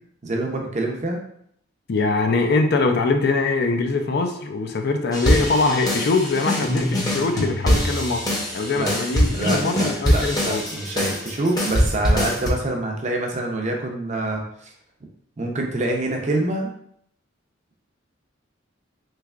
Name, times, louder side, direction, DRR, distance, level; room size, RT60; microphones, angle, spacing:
voice 1, 0.2-1.2 8.7-9.0 9.3-14.7 15.4-16.7, right 2 dB, 35° right, 1 dB, 0.6 m, -26 dB
voice 2, 1.9-8.2 8.5-10.6, left 3 dB, 55° left, 5 dB, 0.4 m, -22 dB
sound 1, 5.1-12.5, equal, 20° left, 0.7 m, -23 dB
3.3 x 3.2 x 2.4 m, 0.68 s
head